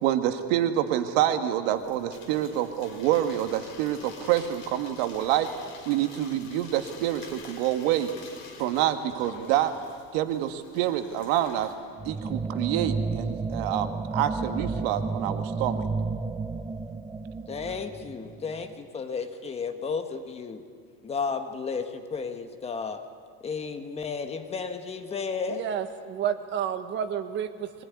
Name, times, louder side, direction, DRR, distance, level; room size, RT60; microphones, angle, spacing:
voice 1, 0.0-5.5 5.9-8.1 8.6-9.7 10.1-11.7 12.0-15.9, right 12 dB, 75° right, 8 dB, 1.8 m, -27 dB
sound 1, 1.7-11.7, left 4 dB, 45° left, 5.2 m, -47 dB
sound 2, 12.0-18.7, right 4 dB, 10° right, 0.8 m, -32 dB
voice 2, 17.5-20.6 21.0-23.0 23.4-25.6, left 5 dB, 20° left, 7 dB, 1.4 m, -33 dB
voice 3, 25.5-27.8, right 9 dB, 40° right, 8 dB, 1.6 m, -30 dB
23.5 x 20.0 x 9.6 m, 2.1 s
cardioid pair, 165°, 30 cm